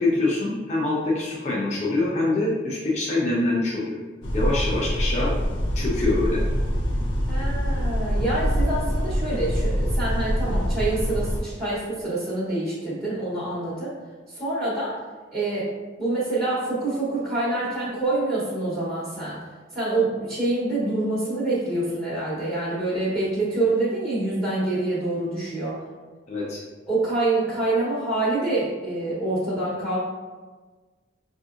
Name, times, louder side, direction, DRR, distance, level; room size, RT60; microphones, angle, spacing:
voice 1, 0.0-4.0 4.3-5.3 5.7-6.4 26.3-26.6, left 2 dB, 35° left, -5 dB, 0.7 m, -24 dB
sound 1, 4.2-11.4, equal, 75° left, 0.6 m, -25 dB
voice 2, 7.3-13.9 14.3-15.0 15.3-15.7 16.0-19.4 19.7-25.7 26.9-30.0, right 2 dB, ahead, -10 dB, 0.9 m, -26 dB
5.3 x 2.8 x 2.5 m, 1.3 s
head